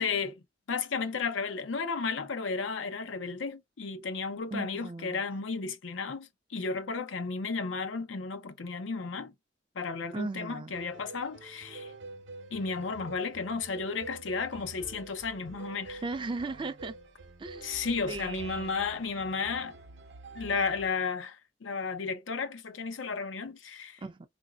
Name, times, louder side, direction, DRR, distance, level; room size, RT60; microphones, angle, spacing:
voice 1, 0.0-9.3 9.7-11.9 12.5-16.0 17.6-19.8 20.3-24.0, left 4 dB, 90° left, 0.6 m, -33 dB
voice 2, 4.5-5.2 10.1-10.7 16.0-17.0 17.4-18.9 24.0-24.3, right 3 dB, 25° right, 0.3 m, -37 dB
sound 1, 10.7-20.9, right 3 dB, 75° right, 0.6 m, -47 dB
3.9 x 2.6 x 2.3 m
head